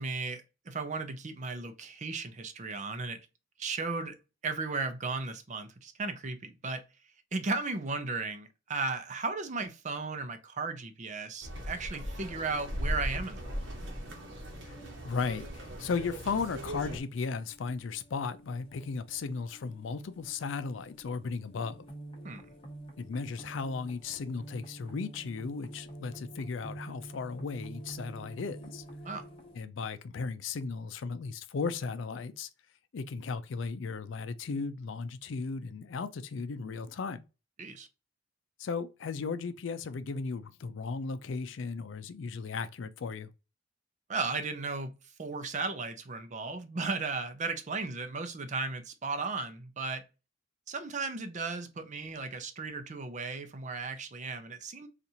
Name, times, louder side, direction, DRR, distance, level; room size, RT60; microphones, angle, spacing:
voice 1, 0.0-3.2 3.6-4.1 4.4-6.8 7.3-13.6 22.2-22.5 29.0-29.3 37.6-37.9 44.1-44.9 45.2-50.0 50.7-54.9, right 3 dB, 40° right, 0.5 m, -35 dB
sound 1, 11.4-17.0, equal, 75° right, 1.0 m, -38 dB
sound 2, 12.0-29.6, right 1 dB, 30° left, 0.9 m, -49 dB
voice 2, 15.0-21.8 23.0-28.8 29.5-32.5 32.9-37.2 38.6-43.3, left 4 dB, 75° left, 0.4 m, -36 dB
4.1 x 2.5 x 2.7 m
head